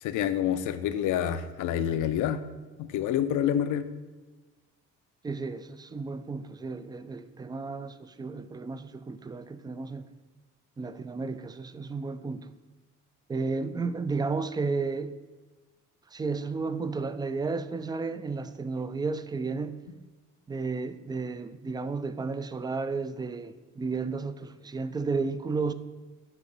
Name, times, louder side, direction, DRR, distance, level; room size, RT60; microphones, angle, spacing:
voice 1, 0.0-2.4 2.8-3.9, left 10 dB, 85° left, 0.5 m, -27 dB
voice 2, 5.2-10.1 10.8-12.5 13.3-15.1 16.1-19.8 20.5-25.7, right 4 dB, 15° right, 0.3 m, -33 dB
7.9 x 3.0 x 5.2 m
cardioid pair, 90°, 30 cm